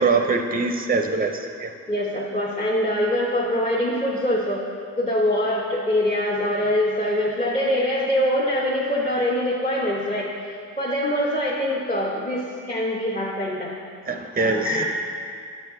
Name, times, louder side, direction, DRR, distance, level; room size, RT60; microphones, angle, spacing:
voice 1, 0.0-1.7 14.1-14.7, right 4 dB, 25° right, 5 dB, 0.6 m, -23 dB
voice 2, 1.9-4.6 5.0-13.7 14.4-14.8, left 1 dB, 20° left, -4 dB, 0.9 m, -24 dB
6.5 x 5.5 x 3.6 m, 2.3 s
cardioid pair, 50°, 33 cm